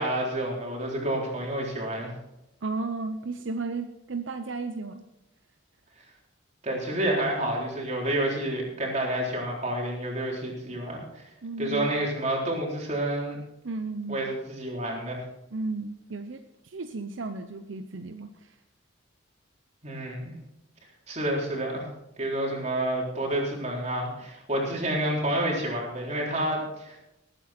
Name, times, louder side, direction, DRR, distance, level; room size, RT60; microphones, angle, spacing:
voice 1, 0.0-2.1 6.6-11.3 11.6-13.4 14.1-15.3 19.8-20.3 21.1-21.9 22.2-27.0, right 1 dB, 35° right, -2 dB, 3.9 m, -29 dB
voice 2, 2.6-5.0 11.4-12.0 13.6-14.2 15.5-18.5, right 3 dB, 70° right, 7 dB, 0.8 m, -34 dB
19.5 x 9.1 x 4.4 m, 0.89 s
head